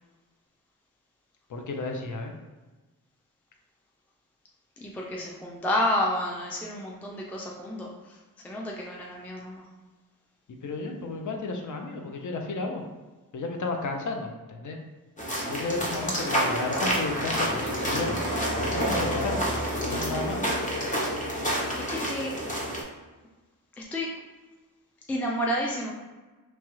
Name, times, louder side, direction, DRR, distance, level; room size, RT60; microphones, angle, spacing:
voice 1, 1.5-2.3 10.6-12.8 13.3-14.8 15.5-18.2 18.6-19.4 19.7-20.5, left 3 dB, 60° left, 3 dB, 0.6 m, -33 dB
voice 2, 4.8-9.7 21.7-22.4 23.7-24.1 25.1-25.9, left 1 dB, 5° left, -2 dB, 0.4 m, -30 dB
sound 1, 15.2-22.8, equal, 20° left, 0.7 m, -28 dB
3.0 x 2.3 x 3.1 m, 1.2 s
wide cardioid pair, 80°, 35 cm